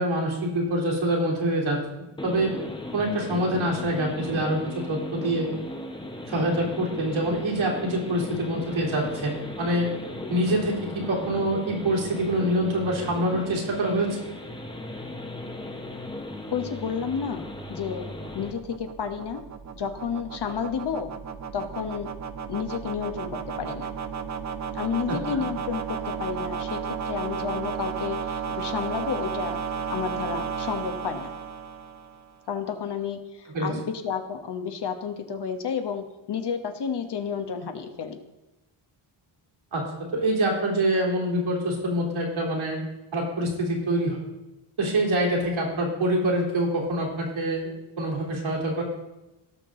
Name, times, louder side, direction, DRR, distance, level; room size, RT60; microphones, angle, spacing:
voice 1, 0.0-2.5 2.9-5.5 6.3-9.9 10.3-14.2 25.1-25.4 33.5-33.7 39.7-39.8 40.1-42.8 43.1-44.3 44.8-48.8, right 1 dB, 70° right, -2 dB, 3.4 m, -25 dB
sound 1, 2.2-18.5, left 1 dB, 10° left, 1.1 m, -37 dB
sound 2, 16.2-32.3, right 6 dB, 35° right, 0.7 m, -34 dB
voice 2, 16.5-18.1 18.3-19.5 19.7-21.1 21.5-22.1 22.5-23.9 24.7-29.6 29.9-31.3 32.5-38.2, left 7 dB, 55° left, 6 dB, 1.3 m, -31 dB
17.0 x 6.1 x 3.9 m, 1.0 s
cardioid pair, 90°, 49 cm